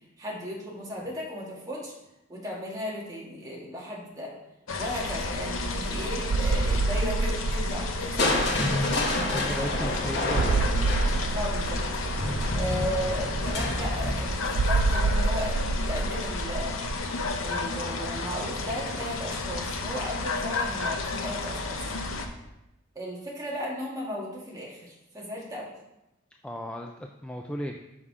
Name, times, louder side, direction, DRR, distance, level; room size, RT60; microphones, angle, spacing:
voice 1, 0.2-1.9 2.3-4.3 4.8-8.8 9.3-9.9 11.3-11.8 12.5-16.8 17.4-21.9 22.9-25.7, equal, 20° right, -4 dB, 1.7 m, -36 dB
sound 1, 4.7-22.3, left 3 dB, 90° left, 0.8 m, -32 dB
sound 2, 5.0-16.9, right 3 dB, 75° right, 0.4 m, -29 dB
Crushing, 8.2-16.1 17.7-18.2 18.7-18.8, left 2 dB, 60° left, 1.2 m, -30 dB
voice 2, 9.2-10.8 26.4-27.8, equal, 5° left, 2 dB, 0.3 m, -36 dB
6.4 x 5.5 x 4.8 m, 0.91 s
head